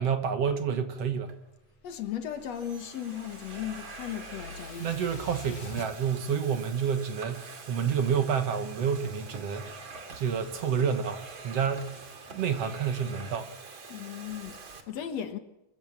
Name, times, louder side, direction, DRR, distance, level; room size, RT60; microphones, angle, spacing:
voice 1, 0.0-1.3 4.8-9.7 10.1-11.9 12.3-13.5, right 7 dB, 60° right, 2.3 m, -29 dB
Domestic sounds home sounds, 1.0-1.4 2.1-14.8, right 4 dB, 40° right, 2.9 m, -46 dB
voice 2, 1.8-5.0 13.9-15.4, left 10 dB, 60° left, 2.4 m, -36 dB
sound 1, 1.9-5.9, left 3 dB, 80° left, 3.9 m, -46 dB
26.5 x 14.5 x 7.4 m
omnidirectional pair, 3.5 m